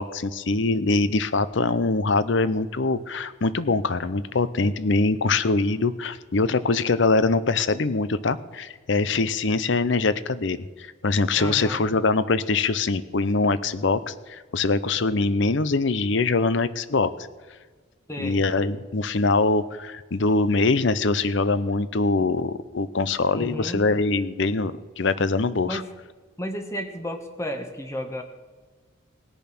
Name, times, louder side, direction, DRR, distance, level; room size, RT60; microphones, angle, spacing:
voice 1, 0.0-17.1 18.2-25.8, left 3 dB, 60° left, 15 dB, 0.6 m, -23 dB
voice 2, 11.4-11.8 18.1-18.4 23.3-23.9 25.7-25.9 26.4-28.2, equal, 15° left, 5 dB, 1.1 m, -32 dB
19.0 x 6.9 x 6.0 m, 1.4 s
head